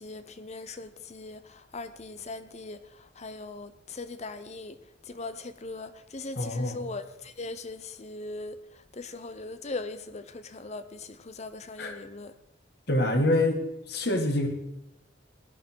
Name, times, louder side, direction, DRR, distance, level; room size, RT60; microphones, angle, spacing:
voice 1, 0.0-1.4 1.7-2.8 3.2-4.8 5.1-8.6 8.9-12.3, left 3 dB, 35° left, 0.8 m, -39 dB
voice 2, 6.4-6.8 11.8-12.0 12.9-14.5, left 1 dB, 60° left, 2.1 m, -26 dB
17.0 x 11.5 x 4.6 m
head